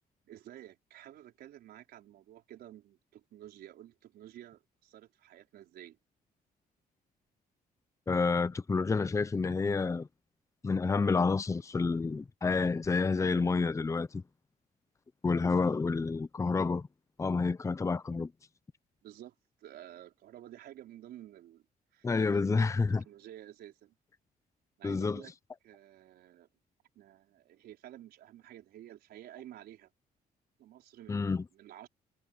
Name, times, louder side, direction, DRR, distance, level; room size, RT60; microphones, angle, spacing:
voice 1, 0.2-6.0 19.0-21.6 21.9-23.9 24.8-25.3 25.6-26.5 26.9-29.9 30.6-31.9, right 12 dB, 80° right, 4.8 m, -51 dB
voice 2, 8.1-10.1 10.6-14.2 15.2-16.9 17.2-18.3 22.0-23.0 24.8-25.2 31.1-31.4, left 4 dB, 20° left, 0.7 m, -29 dB
cardioid pair, 125°, 16 cm